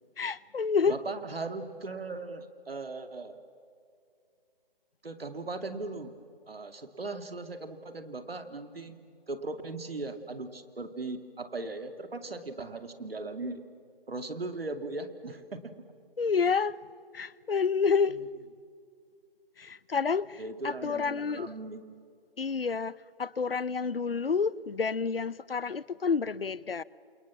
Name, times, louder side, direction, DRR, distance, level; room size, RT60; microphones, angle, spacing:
voice 1, 0.2-0.9 16.2-16.8 17.1-18.2 19.6-21.5 22.4-26.8, left 5 dB, 70° left, 0.9 m, -29 dB
voice 2, 0.9-3.4 5.0-6.2 6.5-9.0 9.3-13.6 14.1-15.7 20.4-21.9, right 3 dB, 75° right, 2.7 m, -38 dB
28.5 x 28.5 x 7.4 m
figure-of-eight pair, 170°, 30 cm